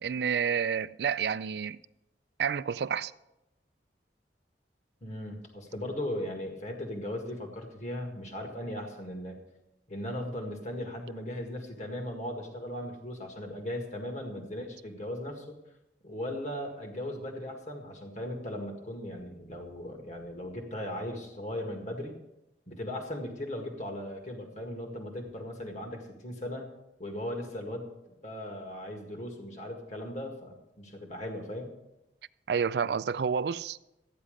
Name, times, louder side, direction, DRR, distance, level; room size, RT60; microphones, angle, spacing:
voice 1, 0.0-1.8 2.4-3.1 32.5-33.8, right 7 dB, 65° right, 0.4 m, -29 dB
voice 2, 5.0-9.4 9.9-15.6 16.0-22.1 22.7-26.7 27.0-31.7, left 1 dB, 40° left, 1.8 m, -38 dB
14.0 x 9.8 x 5.1 m
head